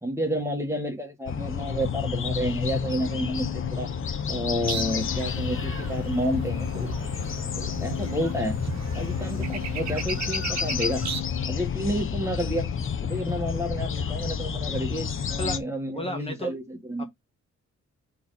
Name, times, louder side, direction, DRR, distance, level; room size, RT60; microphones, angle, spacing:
voice 1, 0.0-3.9 4.3-6.9 7.6-8.6 8.9-11.1 11.4-12.7 13.0-17.0, equal, 10° right, 1.7 m, -30 dB
sound 1, 1.3-15.6, left 7 dB, 45° left, 0.9 m, -30 dB
Organ, 1.5-12.3, left 10 dB, 75° left, 1.4 m, -39 dB
sound 2, 4.7-11.2, right 9 dB, 65° right, 0.8 m, -37 dB
voice 2, 15.9-16.5 17.0-17.1, left 1 dB, 20° left, 1.4 m, -33 dB
5.7 x 4.4 x 4.1 m
wide cardioid pair, 145°, 29 cm